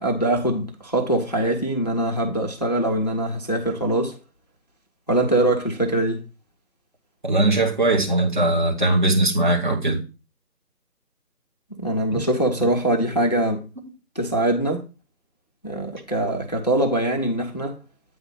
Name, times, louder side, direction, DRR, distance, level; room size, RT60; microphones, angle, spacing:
voice 1, 0.0-4.2 5.1-6.2 11.8-13.6 14.1-14.8 15.6-17.8, right 1 dB, 25° left, 0.8 m, -23 dB
voice 2, 7.2-10.0 12.1-12.2, right 2 dB, 30° right, 1.5 m, -20 dB
8.7 x 3.9 x 5.5 m
figure-of-eight pair, 160°, 48 cm